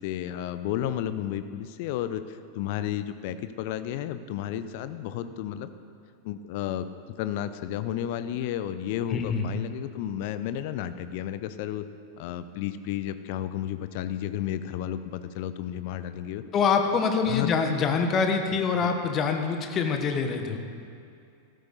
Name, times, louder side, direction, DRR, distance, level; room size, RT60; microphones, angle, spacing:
voice 1, 0.0-5.7 6.2-6.9 7.2-11.8 12.2-16.4 17.3-17.5, left 11 dB, 50° left, 12 dB, 0.7 m, -32 dB
voice 2, 9.1-9.5 16.5-20.6, left 5 dB, 30° left, 5 dB, 1.4 m, -25 dB
14.0 x 13.5 x 4.1 m, 2.5 s
figure-of-eight pair, 90°, 0 cm